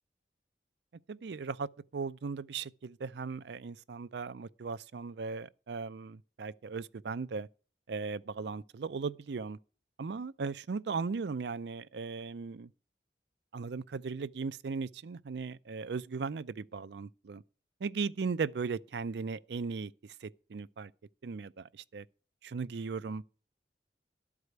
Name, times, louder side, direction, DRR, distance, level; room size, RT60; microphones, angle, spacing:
voice 1, 1.1-7.5 7.9-9.6 10.0-12.7 13.5-17.4 17.8-20.9 21.2-22.0 22.4-23.2, right 4 dB, 80° right, 0.5 m, -37 dB
12.0 x 4.8 x 7.9 m
head